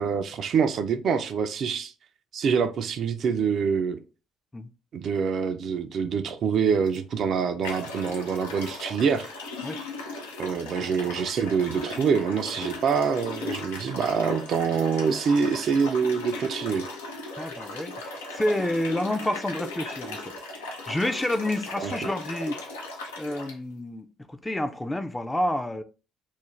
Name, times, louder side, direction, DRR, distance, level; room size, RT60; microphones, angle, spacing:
voice 1, 0.0-1.9 2.3-4.0 4.9-9.3 10.4-16.9 21.8-21.9, right 6 dB, 60° right, 0.3 m, -25 dB
sound 1, 6.9-7.0 7.6-23.5, left 2 dB, 90° left, 0.4 m, -37 dB
voice 2, 17.4-20.3 20.9-22.6 23.2-25.8, left 1 dB, 15° left, 0.4 m, -29 dB
2.4 x 2.1 x 3.0 m
hypercardioid pair, 55°, 0 cm